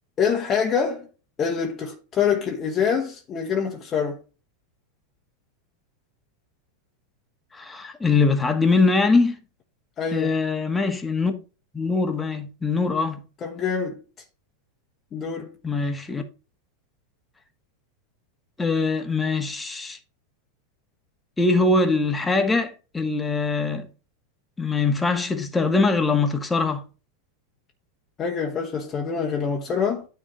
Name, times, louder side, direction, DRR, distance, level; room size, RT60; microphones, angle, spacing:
voice 1, 0.2-1.1 1.4-4.2 10.0-10.4 13.4-14.0 15.1-15.5 28.2-30.1, left 6 dB, 30° left, 1.3 m, -25 dB
voice 2, 7.5-9.4 10.1-11.3 11.7-13.2 15.6-16.2 18.6-20.0 21.4-23.9 24.6-26.8, left 3 dB, 15° left, 1.5 m, -22 dB
9.9 x 3.6 x 4.7 m
hypercardioid pair, 95°, 0 cm